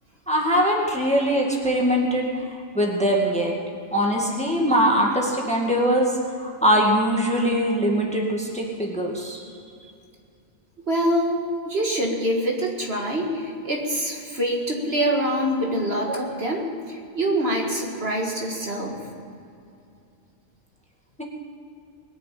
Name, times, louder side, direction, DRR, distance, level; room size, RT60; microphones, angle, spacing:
voice 1, 0.3-2.3 2.7-3.5 3.9-6.1 6.4-9.4, equal, 5° left, -1 dB, 1.9 m, -22 dB
voice 2, 10.9-19.0, equal, 50° right, 0 dB, 2.1 m, -25 dB
21.0 x 7.1 x 8.8 m, 2.5 s
omnidirectional pair, 1.4 m